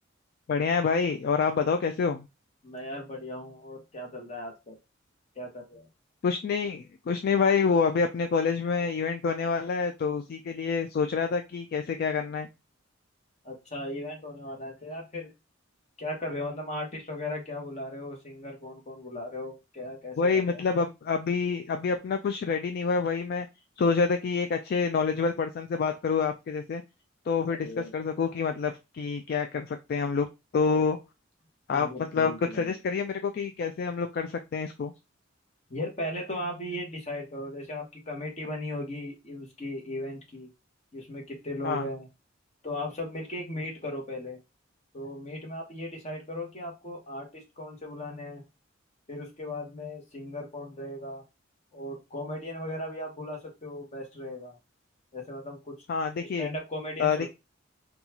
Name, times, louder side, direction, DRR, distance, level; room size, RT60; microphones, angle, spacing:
voice 1, 0.5-2.2 6.2-12.5 20.2-23.5 23.8-26.8 27.3-30.3 30.5-31.0 31.7-34.9 41.6-41.9 55.9-56.5 57.0-57.3, left 5 dB, 50° left, 6 dB, 0.3 m, -27 dB
voice 2, 2.6-4.8 5.3-5.9 13.4-15.3 16.0-20.6 27.5-27.9 31.7-32.7 35.7-40.5 40.9-42.1 42.6-44.4 44.9-48.4 49.1-51.2 51.7-54.6 55.1-55.7 56.4-57.3, left 1 dB, 35° left, 1 dB, 1.1 m, -37 dB
3.9 x 2.3 x 2.8 m, 0.25 s
head